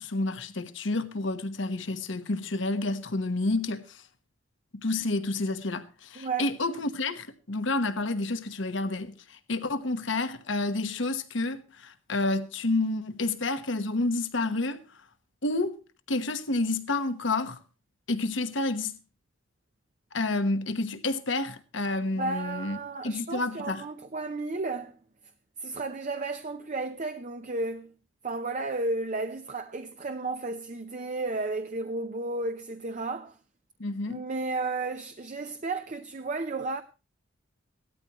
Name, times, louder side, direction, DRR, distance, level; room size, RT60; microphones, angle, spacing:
voice 1, 0.0-4.0 4.8-14.8 15.4-15.7 16.1-17.6 18.1-18.9 20.1-23.8 33.8-34.2, left 2 dB, 65° left, 1.2 m, -29 dB
voice 2, 6.2-6.5 22.2-25.0 25.6-27.9 28.2-33.4 34.1-36.8, right 3 dB, 40° right, 0.6 m, -33 dB
17.5 x 13.0 x 3.0 m
head